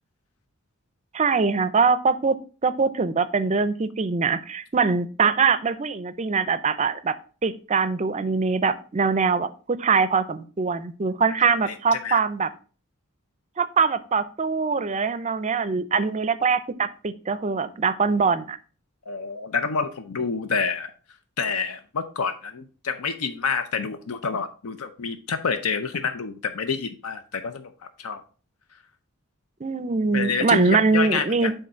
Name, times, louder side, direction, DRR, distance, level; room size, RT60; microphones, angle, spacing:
voice 1, 1.1-2.4 2.6-7.2 7.4-12.5 13.6-18.6 29.6-31.5, right 5 dB, 30° right, 15 dB, 0.4 m, -23 dB
voice 2, 11.7-12.2 19.1-20.9 21.4-27.7 28.0-28.2 30.1-31.5, left 5 dB, 85° left, 9 dB, 0.6 m, -28 dB
6.4 x 3.9 x 5.5 m, 0.38 s
head